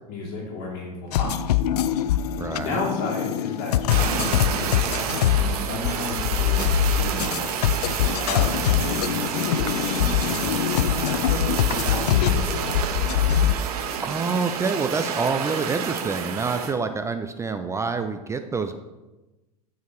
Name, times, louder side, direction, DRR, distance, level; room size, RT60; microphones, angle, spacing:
voice 1, 0.1-1.3 2.5-7.7 8.3-12.8, left 3 dB, 50° left, -3 dB, 2.3 m, -33 dB
sound 1, 1.1-13.6, left 10 dB, 80° left, 0.4 m, -23 dB
voice 2, 2.4-2.8 14.0-18.8, right 4 dB, 15° right, 8 dB, 0.4 m, -27 dB
Fire, 3.9-16.7, right 7 dB, 70° right, 1.1 m, -29 dB
12.5 x 4.7 x 3.1 m, 1.1 s
hypercardioid pair, 100°, 20 cm